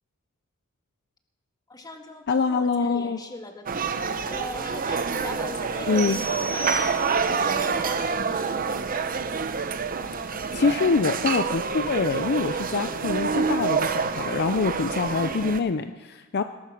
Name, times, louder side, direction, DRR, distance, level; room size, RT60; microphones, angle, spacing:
voice 1, 1.7-9.2, left 2 dB, 20° left, 4 dB, 1.6 m, -40 dB
voice 2, 2.3-3.2 5.9-6.2 10.2-16.4, left 4 dB, 50° left, 9 dB, 0.5 m, -25 dB
sound 1, 3.7-15.6, right 5 dB, 40° right, 0.7 m, -27 dB
sound 2, 6.0-7.5, right 3 dB, 60° right, 3.8 m, -34 dB
18.0 x 13.0 x 5.9 m, 1.3 s
head